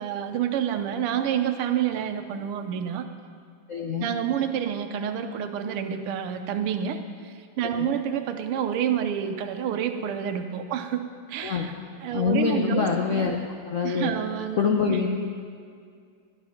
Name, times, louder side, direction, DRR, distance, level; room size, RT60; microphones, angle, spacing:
voice 1, 0.0-3.1 4.0-11.7 12.0-13.2 13.8-14.6, right 9 dB, 90° right, 8 dB, 1.7 m, -28 dB
voice 2, 3.7-4.1 7.8-7.9 11.4-11.7 12.1-13.4 13.7-14.1 14.6-15.1, left 5 dB, 70° left, 1 dB, 0.7 m, -24 dB
12.0 x 10.0 x 5.7 m, 2.2 s
omnidirectional pair, 2.4 m